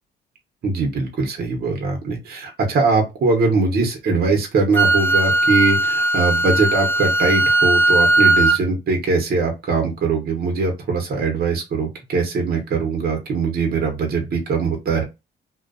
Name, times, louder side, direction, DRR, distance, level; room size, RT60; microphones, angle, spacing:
voice 1, 0.6-15.0, right 4 dB, 50° right, 2 dB, 0.9 m, -21 dB
Wind instrument woodwind instrument, 4.7-8.6, right 2 dB, 10° left, 0.5 m, -17 dB
2.4 x 2.2 x 2.4 m, 0.24 s
cardioid pair, 90°, 20 cm